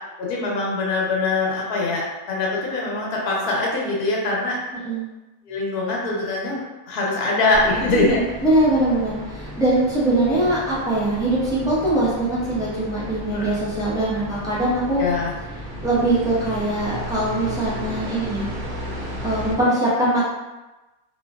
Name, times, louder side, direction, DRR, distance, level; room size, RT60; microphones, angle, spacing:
voice 1, 0.2-4.6 5.5-6.6 6.9-8.2 13.3-13.5 15.0-15.3, left 2 dB, 80° left, -3 dB, 1.2 m, -23 dB
sound 1, 7.5-19.5, equal, 55° right, 0.5 m, -34 dB
voice 2, 7.9-15.0 15.8-18.5 19.2-20.3, right 1 dB, 5° right, -10 dB, 0.5 m, -22 dB
2.9 x 2.8 x 2.2 m, 1.1 s
omnidirectional pair, 1.6 m